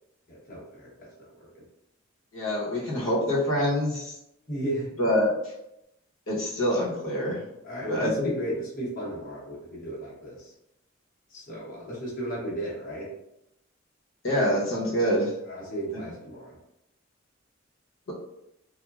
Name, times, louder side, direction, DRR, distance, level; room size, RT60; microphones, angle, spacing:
voice 1, 0.3-1.1 1.4-1.5 4.5-4.9 7.6-10.5 11.3-13.1 15.5-16.6, right 1 dB, 45° left, -6 dB, 0.9 m, -34 dB
voice 2, 2.3-4.1 5.0-5.5 6.3-7.4 7.9-8.3 14.2-15.3, equal, 85° left, -6 dB, 0.9 m, -25 dB
3.0 x 2.1 x 2.3 m, 0.83 s
head